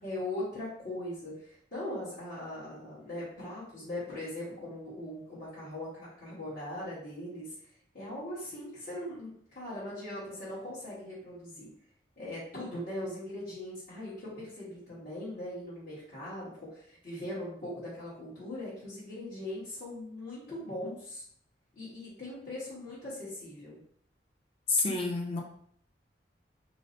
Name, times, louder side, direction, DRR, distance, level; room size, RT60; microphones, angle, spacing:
voice 1, 0.0-7.5 7.9-11.7 12.2-21.2 21.7-23.8, left 1 dB, 50° left, -12 dB, 1.4 m, -40 dB
voice 2, 24.7-25.4, left 3 dB, 30° left, -1 dB, 0.6 m, -28 dB
4.7 x 2.1 x 2.6 m, 0.64 s
head